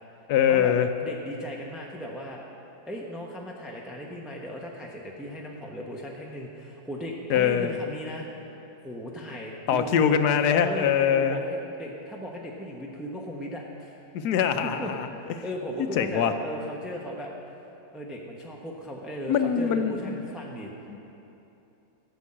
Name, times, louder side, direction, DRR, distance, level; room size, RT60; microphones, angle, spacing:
voice 1, 0.3-0.9 7.3-7.8 9.7-11.4 14.1-15.1 16.0-16.3 19.3-20.2 20.9-21.2, left 8 dB, 85° left, 8 dB, 1.3 m, -23 dB
voice 2, 1.0-2.5 2.9-8.3 8.8-10.2 10.4-14.0 14.4-14.9 15.4-17.3 17.9-20.7, equal, ahead, -2 dB, 0.8 m, -37 dB
14.0 x 6.4 x 8.6 m, 2.9 s
omnidirectional pair, 1.7 m